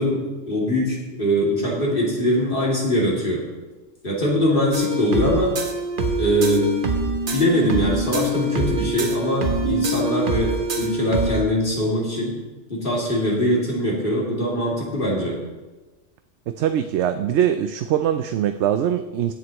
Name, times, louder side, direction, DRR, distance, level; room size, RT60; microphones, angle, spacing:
voice 1, 0.0-3.4 4.0-5.6 6.2-6.7 7.3-12.4 12.7-15.4, equal, 50° left, -4 dB, 2.8 m, -22 dB
sound 1, 4.7-11.4, right 2 dB, 50° right, 1.2 m, -24 dB
voice 2, 16.6-19.3, right 10 dB, 75° right, 9 dB, 0.8 m, -22 dB
20.0 x 7.8 x 3.0 m, 1.2 s
omnidirectional pair, 1.2 m